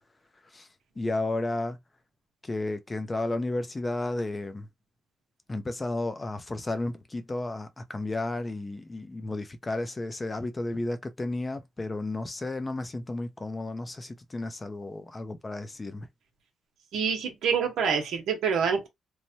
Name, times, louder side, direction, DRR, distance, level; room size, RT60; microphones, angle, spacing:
voice 1, 1.0-1.8 2.4-4.7 5.5-16.1, left 2 dB, 25° left, 0.5 m, -33 dB
voice 2, 16.9-18.9, right 6 dB, 75° right, 0.8 m, -26 dB
3.1 x 2.1 x 2.7 m
cardioid pair, 90°, 0 cm